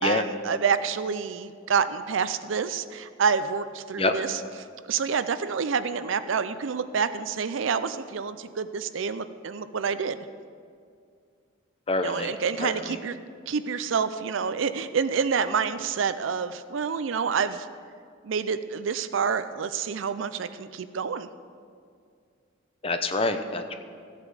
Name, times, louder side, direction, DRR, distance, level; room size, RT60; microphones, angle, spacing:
voice 1, 0.0-4.4 4.9-10.2 12.0-13.2 13.5-17.7 18.2-21.3, right 6 dB, 65° right, 13 dB, 0.5 m, -28 dB
voice 2, 11.9-12.3 12.6-13.0 22.8-23.8, left 3 dB, 30° left, 7 dB, 0.7 m, -26 dB
15.0 x 8.2 x 4.9 m, 2.2 s
head